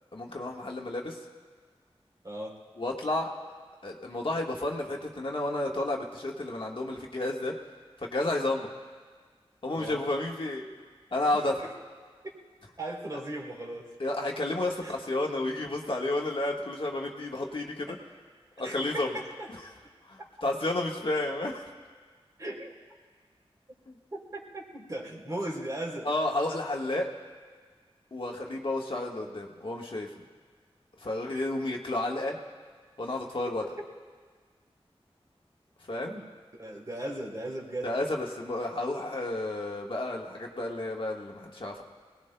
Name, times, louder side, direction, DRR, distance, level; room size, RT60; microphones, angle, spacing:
voice 1, 0.1-1.2 2.8-3.3 3.8-7.5 8.0-8.7 9.6-10.6 11.1-11.7 14.0-18.0 18.6-19.1 20.1-21.6 23.9-24.0 26.0-27.1 28.1-30.1 31.0-32.4 33.0-33.6 35.9-36.2 37.8-41.8, left 2 dB, 55° left, -1 dB, 1.4 m, -31 dB
voice 2, 2.2-2.6 9.7-10.0 11.2-11.4 12.8-13.9 14.8-14.9 17.9-18.0 18.6-19.5 22.4-22.7 24.1-26.1 33.1-33.2 33.8-33.9 36.0-37.9, right 1 dB, 35° right, -2 dB, 3.3 m, -38 dB
25.5 x 19.0 x 2.2 m, 1.5 s
wide cardioid pair, 85°, 10 cm